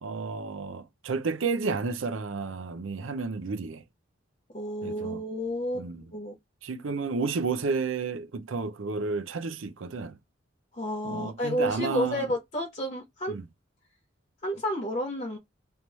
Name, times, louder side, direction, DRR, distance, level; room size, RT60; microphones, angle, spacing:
voice 1, 0.0-3.8 4.8-5.2 5.7-6.0 6.6-10.2 11.0-12.3 13.3-13.4, right 4 dB, 80° right, 0.6 m, -31 dB
voice 2, 4.5-6.4 10.7-13.3 14.4-15.4, equal, 35° left, 1.4 m, -31 dB
3.2 x 3.0 x 4.2 m
head